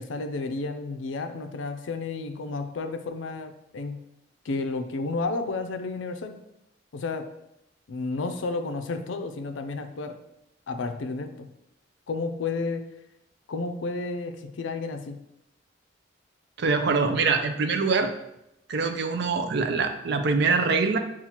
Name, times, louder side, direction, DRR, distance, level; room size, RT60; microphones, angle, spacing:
voice 1, 0.0-4.1 4.4-6.4 6.9-7.3 7.9-10.2 10.7-11.5 12.1-12.9 13.5-15.2, left 3 dB, 85° left, 8 dB, 0.4 m, -32 dB
voice 2, 16.6-18.1 18.7-21.0, right 4 dB, 60° right, 7 dB, 0.4 m, -24 dB
7.1 x 2.4 x 2.9 m, 0.83 s
head